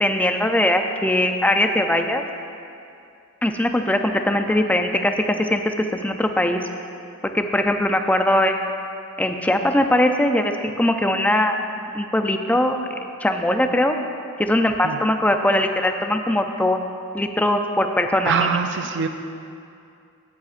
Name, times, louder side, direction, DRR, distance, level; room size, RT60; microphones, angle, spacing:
voice 1, 0.0-2.2 3.4-5.6 5.9-6.6 7.3-8.6 9.2-10.5 10.8-12.8 13.2-14.0 14.4-16.8 17.1-18.6, left 1 dB, 5° left, 5 dB, 0.4 m, -20 dB
voice 2, 18.2-19.1, right 6 dB, 55° right, 6 dB, 0.5 m, -23 dB
16.5 x 7.8 x 2.5 m, 2.5 s
head